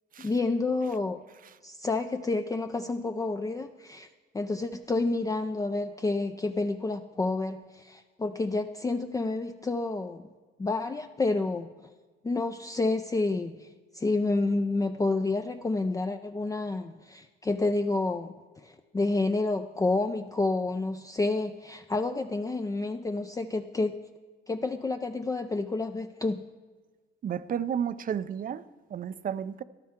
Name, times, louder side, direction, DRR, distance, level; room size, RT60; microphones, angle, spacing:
voice 1, 0.2-1.2 1.6-4.1 4.3-10.3 10.6-11.9 12.2-13.7 13.9-18.3 18.6-24.0 24.5-26.4, left 3 dB, 15° left, 0.4 m, -29 dB
voice 2, 27.2-28.6 28.9-29.6, right 8 dB, 45° right, 0.5 m, -32 dB
14.0 x 11.0 x 3.6 m
cardioid pair, 90°, 20 cm